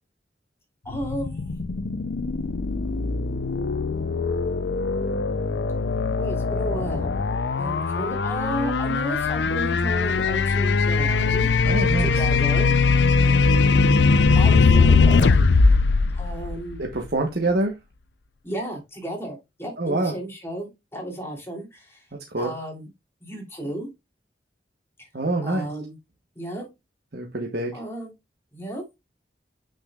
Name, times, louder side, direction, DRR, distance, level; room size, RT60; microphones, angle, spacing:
voice 1, 0.8-1.5 6.2-7.1 7.6-11.5 12.0-12.7 14.3-15.4 16.1-16.8 18.4-22.1 22.4-22.9 23.2-23.9 25.0-25.1 25.4-26.0 26.3-26.7 27.7-28.1 28.5-28.8, right 1 dB, 15° left, 3.0 m, -33 dB
sound 1, 0.9-17.1, left 4 dB, 80° left, 0.5 m, -21 dB
voice 2, 11.6-12.2 16.8-17.7 19.8-20.1 22.3-22.5 25.1-25.7 27.1-27.7, right 2 dB, 60° right, 1.2 m, -25 dB
8.0 x 6.4 x 2.4 m
head